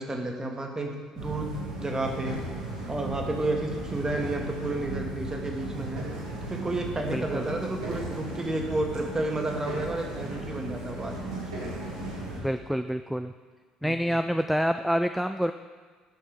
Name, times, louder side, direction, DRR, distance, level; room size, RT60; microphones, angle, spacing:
voice 1, 0.0-1.5 1.8-2.4 2.9-6.0 6.5-11.7 13.8-14.1, right 2 dB, 20° right, 2 dB, 1.7 m, -31 dB
sound 1, 1.1-12.4, right 1 dB, 80° right, 2.4 m, -36 dB
voice 2, 7.1-7.5 12.4-13.3 13.8-15.5, equal, 5° right, 8 dB, 0.4 m, -27 dB
12.0 x 6.3 x 5.2 m, 1.5 s
figure-of-eight pair, 50°, 3 cm